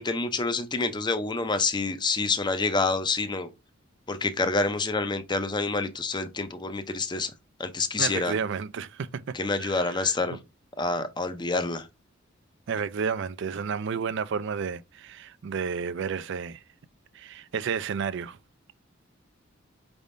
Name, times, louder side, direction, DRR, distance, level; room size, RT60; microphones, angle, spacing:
voice 1, 0.0-3.5 4.1-7.3 7.6-8.3 9.3-10.4 10.8-11.9, left 3 dB, 25° left, 0.5 m, -27 dB
voice 2, 8.0-10.4 12.7-16.6 17.1-18.4, right 6 dB, 65° right, 0.4 m, -32 dB
5.3 x 3.4 x 2.5 m
head